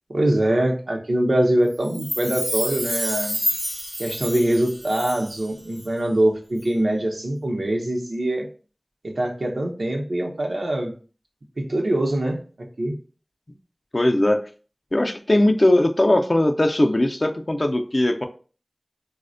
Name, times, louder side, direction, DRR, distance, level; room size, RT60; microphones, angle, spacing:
voice 1, 0.1-3.4 4.0-8.5 9.0-10.9 11.6-12.4 12.8-12.9, right 1 dB, 90° right, 1 dB, 0.6 m, -23 dB
Chime, 1.8-5.5 5.8-5.9, equal, 10° right, 0.5 m, -29 dB
voice 2, 13.9-14.4 14.9-18.2, left 1 dB, 45° left, 5 dB, 0.4 m, -19 dB
4.1 x 2.1 x 2.5 m, 0.39 s
wide cardioid pair, 45°, 0 cm